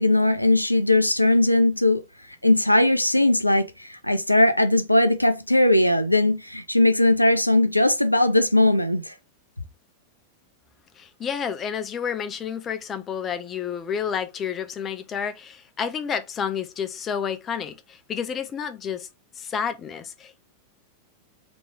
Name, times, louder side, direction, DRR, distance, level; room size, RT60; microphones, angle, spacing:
voice 1, 0.0-2.0 2.4-9.1, left 1 dB, 90° left, 0.4 m, -19 dB
voice 2, 11.0-19.1 19.4-20.4, left 7 dB, 25° left, 0.6 m, -30 dB
3.1 x 3.0 x 4.4 m
figure-of-eight pair, 90°, 0 cm